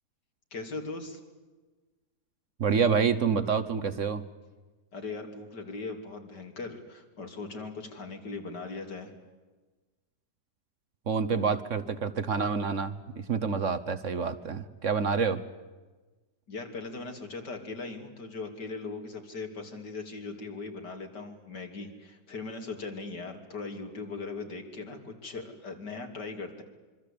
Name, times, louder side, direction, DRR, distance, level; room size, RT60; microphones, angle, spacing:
voice 1, 0.5-1.2 4.9-9.1 16.5-26.6, left 3 dB, 80° left, 4 dB, 3.7 m, -39 dB
voice 2, 2.6-4.2 11.1-15.4, right 5 dB, 50° right, 11 dB, 1.3 m, -28 dB
26.0 x 24.5 x 8.6 m, 1.2 s
omnidirectional pair, 1.8 m